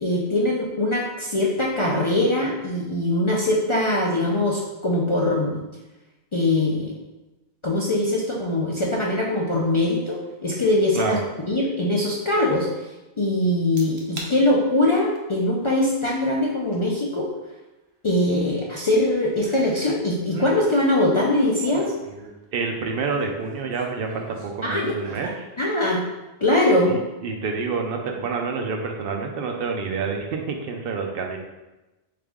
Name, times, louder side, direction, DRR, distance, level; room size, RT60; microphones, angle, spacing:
voice 1, 0.0-5.6 6.3-7.0 7.6-11.2 11.5-12.7 13.2-17.3 18.0-21.9 24.6-24.9 25.6-26.0 26.4-26.9, left 1 dB, 40° left, -4 dB, 0.4 m, -22 dB
sound 1, 13.8-14.3 14.8-15.2 16.7-16.8 19.4-20.0 20.2-20.6 21.4-22.4 23.0-24.5 24.9-25.4 25.9-26.0, right 2 dB, 85° right, 1.0 m, -39 dB
voice 2, 22.5-25.5 26.9-31.4, right 4 dB, 65° right, 2 dB, 0.7 m, -28 dB
3.9 x 3.3 x 3.5 m, 1.0 s
omnidirectional pair, 1.1 m